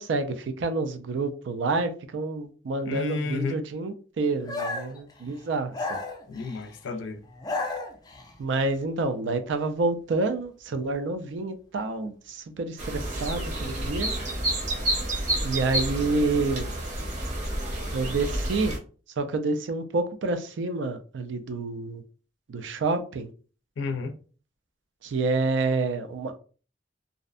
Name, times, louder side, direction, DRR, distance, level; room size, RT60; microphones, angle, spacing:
voice 1, 0.0-6.0 8.4-14.1 15.4-16.7 17.9-18.8 19.2-22.0 22.5-23.3 25.0-26.4, right 3 dB, 80° right, 0.4 m, -28 dB
voice 2, 2.8-3.6 6.3-7.2 23.8-24.1, left 4 dB, 85° left, 0.4 m, -31 dB
sound 1, 4.5-5.0 5.7-6.7 7.3-8.3, left 3 dB, 20° left, 0.4 m, -33 dB
sound 2, 12.8-18.8, right 1 dB, 40° right, 0.7 m, -29 dB
2.5 x 2.1 x 2.4 m
head